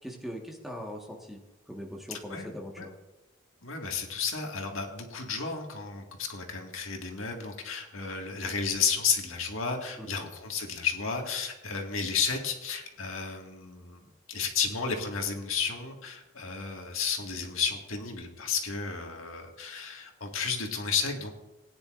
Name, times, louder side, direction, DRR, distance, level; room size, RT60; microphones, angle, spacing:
voice 1, 0.0-1.4 1.7-2.9 10.0-10.1, equal, ahead, 0 dB, 1.5 m, -40 dB
voice 2, 2.1-2.5 2.8-2.9 3.6-14.0 14.3-21.3, left 6 dB, 80° left, 2 dB, 1.9 m, -32 dB
19.0 x 9.9 x 2.5 m, 1.1 s
head